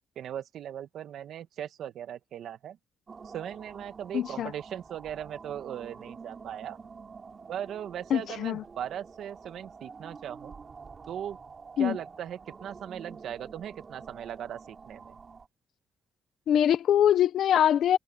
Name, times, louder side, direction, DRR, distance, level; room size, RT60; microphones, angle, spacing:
voice 1, 0.1-2.8 3.2-6.8 7.5-10.5 11.1-11.4 11.8-15.2, right 10 dB, 70° right, 1.6 m, -38 dB
sound 1, 3.1-15.5, right 5 dB, 40° right, 7.3 m, -48 dB
voice 2, 4.1-4.5 8.1-8.6 11.8-12.0 16.5-18.0, left 10 dB, 70° left, 1.3 m, -23 dB
cardioid pair, 90°, 0 cm